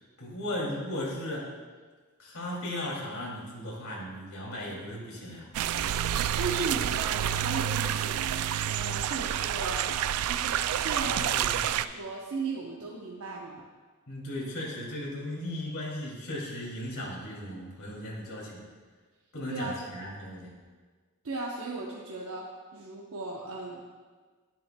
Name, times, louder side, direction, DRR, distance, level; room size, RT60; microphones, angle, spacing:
voice 1, 0.2-1.5 2.2-5.5 11.0-11.7 14.1-18.6 19.3-20.5, left 1 dB, 70° left, -4 dB, 2.7 m, -36 dB
sound 1, 5.5-11.9, right 10 dB, 85° right, 0.3 m, -29 dB
voice 2, 6.3-8.2 8.7-10.0 10.2-11.2 11.6-13.6 19.5-19.8 21.2-22.5 22.7-23.8, right 3 dB, 70° right, -3 dB, 0.8 m, -36 dB
10.5 x 10.0 x 2.2 m, 1.4 s
head